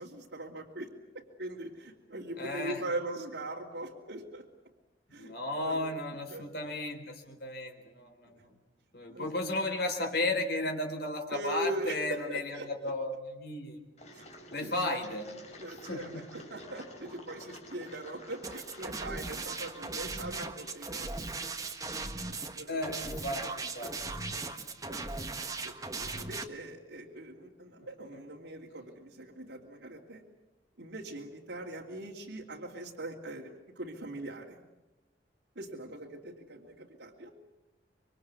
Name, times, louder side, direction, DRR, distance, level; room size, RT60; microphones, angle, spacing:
voice 1, 0.0-4.4 5.1-6.0 6.3-6.5 9.1-9.3 11.3-12.9 14.1-14.3 14.6-14.7 15.6-21.1 22.3-22.8 23.8-24.0 24.8-25.1 25.6-30.2 30.8-34.7 35.5-37.3, right 1 dB, 80° right, -3 dB, 2.9 m, -41 dB
voice 2, 2.4-2.8 5.1-8.5 8.9-13.8 14.5-15.3 15.9-16.3 22.7-23.9 24.2-24.7 27.8-27.9, left 2 dB, 60° left, 4 dB, 4.2 m, -34 dB
Engine, 14.0-21.7, left 1 dB, 40° left, 4.4 m, -51 dB
sound 1, 18.4-26.4, right 3 dB, 20° right, 1.5 m, -38 dB
27.0 x 24.0 x 8.3 m, 0.98 s
head